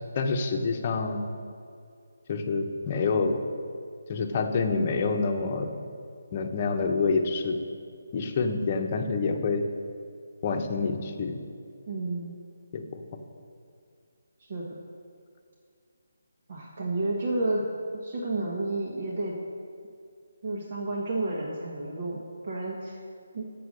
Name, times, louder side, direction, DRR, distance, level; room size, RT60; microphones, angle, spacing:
voice 1, 0.2-1.3 2.3-3.4 4.1-5.7 6.3-7.6 8.1-9.6 10.4-11.4 12.7-13.0, left 4 dB, 35° left, 4 dB, 0.9 m, -27 dB
voice 2, 11.9-12.4 14.4-14.6 16.5-17.6 18.0-19.4 20.4-23.0 23.3-23.5, right 2 dB, 50° right, -3 dB, 1.4 m, -31 dB
8.0 x 6.9 x 6.4 m, 2.3 s
figure-of-eight pair, 160°, 0 cm